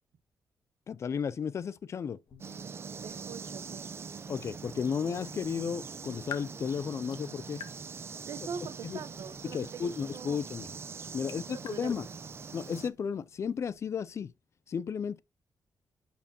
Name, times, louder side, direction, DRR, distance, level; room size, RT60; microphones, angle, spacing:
voice 1, 0.9-2.2 4.3-7.6 8.8-9.0 9.4-10.7 11.1-12.1 12.5-14.3 14.7-15.2, left 6 dB, 45° left, 0.4 m, -34 dB
Guitar, 2.3-4.0 4.3-6.0 6.4-6.6 7.0-7.3 7.7-7.8 8.1-8.3 8.6-8.8, left 4 dB, 60° left, 1.7 m, -58 dB
sound 1, 2.4-12.9, right 5 dB, 40° right, 0.6 m, -43 dB
sound 2, 2.9-14.0, left 7 dB, 90° left, 1.0 m, -52 dB
voice 2, 3.0-3.9 8.3-10.5 11.2-12.1, right 7 dB, 80° right, 0.9 m, -43 dB
11.0 x 4.4 x 2.8 m
wide cardioid pair, 135°, 7 cm